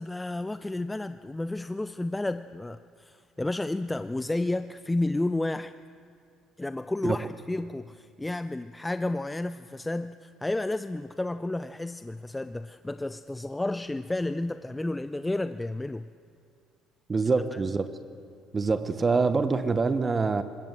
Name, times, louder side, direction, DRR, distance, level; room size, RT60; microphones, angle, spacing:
voice 1, 0.0-5.7 6.6-16.1 17.5-17.6, left 2 dB, 15° left, 12 dB, 0.5 m, -31 dB
voice 2, 17.1-17.9 18.5-20.4, right 4 dB, 30° right, 11 dB, 1.0 m, -25 dB
21.0 x 18.0 x 7.7 m, 2.4 s
supercardioid pair, 75°, 0 cm